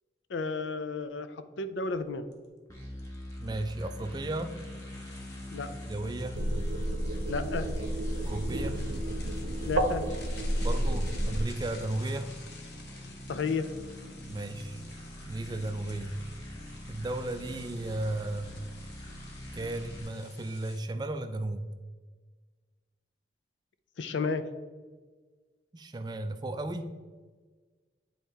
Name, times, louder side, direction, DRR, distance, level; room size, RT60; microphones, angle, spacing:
voice 1, 0.3-2.3 5.5-5.7 7.3-7.7 9.6-10.0 13.3-13.7 24.0-24.5, left 4 dB, 80° left, 11 dB, 0.5 m, -32 dB
sound 1, 1.9-2.0 2.3-2.5 3.0-20.8, left 3 dB, 60° left, 1.0 m, -52 dB
sound 2, 2.7-20.0, left 1 dB, 15° left, 1.2 m, -43 dB
voice 2, 3.4-4.6 5.9-6.4 8.2-8.8 10.6-12.3 14.2-14.8 15.2-16.2 16.9-18.6 19.5-21.7 25.7-26.9, right 2 dB, 20° right, 8 dB, 0.3 m, -35 dB
sound 3, 6.3-11.4, right 1 dB, 85° right, 0.7 m, -31 dB
8.0 x 4.3 x 3.4 m, 1.4 s
head